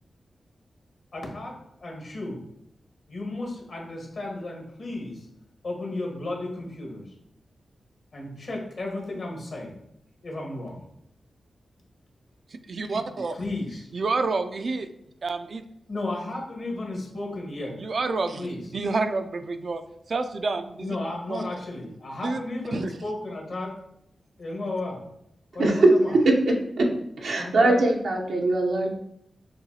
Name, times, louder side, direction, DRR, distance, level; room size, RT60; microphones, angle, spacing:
voice 1, 1.1-2.4 3.1-5.3 5.6-7.1 8.1-9.8 10.2-10.9 13.4-13.9 15.9-17.7 18.4-18.6 20.8-23.8 24.4-25.0 25.5-26.2 27.4-27.8, left 2 dB, 70° left, -1 dB, 1.3 m, -33 dB
voice 2, 12.5-13.4 13.9-14.9 15.2-15.6 17.8-18.5 18.7-19.8 20.1-21.0 21.3-21.5 22.2-22.4 22.7-22.9, right 3 dB, 65° right, 8 dB, 0.4 m, -28 dB
voice 3, 25.6-25.9 26.2-26.3 26.8-26.9 27.2-28.9, right 2 dB, 85° right, 0 dB, 0.7 m, -21 dB
6.6 x 2.3 x 2.8 m, 0.78 s
cardioid pair, 45°, 0 cm